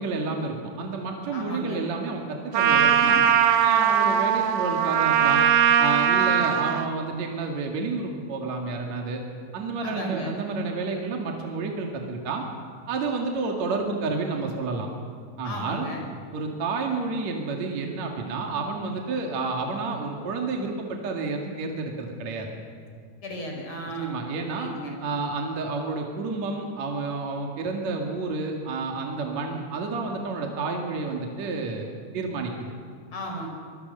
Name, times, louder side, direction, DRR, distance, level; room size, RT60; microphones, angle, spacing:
voice 1, 0.0-3.2 3.6-5.5 5.8-9.2 9.5-12.5 12.9-14.9 15.4-15.9 16.3-22.5 24.0-24.7 25.0-31.9 32.1-32.7, right 3 dB, 50° right, 1 dB, 2.7 m, -30 dB
voice 2, 1.3-1.9 6.2-6.6 9.8-10.4 15.4-16.0 23.2-24.3 24.5-25.0 33.1-33.5, equal, 30° left, 1 dB, 5.7 m, -35 dB
Trumpet, 2.5-6.9, right 8 dB, 70° right, 2.8 m, -20 dB
25.0 x 22.5 x 6.8 m, 2.3 s
omnidirectional pair, 5.2 m